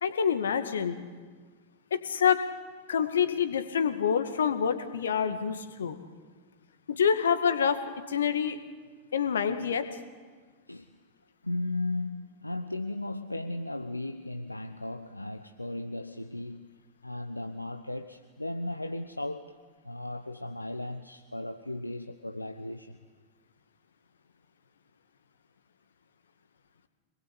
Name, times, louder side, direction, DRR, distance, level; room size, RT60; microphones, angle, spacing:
voice 1, 0.0-1.0 1.9-2.4 2.9-6.0 6.9-7.8 8.1-8.6 9.1-9.8, left 7 dB, 65° left, 2.1 m, -26 dB
voice 2, 11.4-16.8 17.0-19.6 19.8-23.0, left 2 dB, 85° left, 0.9 m, -36 dB
26.5 x 20.5 x 8.4 m
figure-of-eight pair, 90°, 0 cm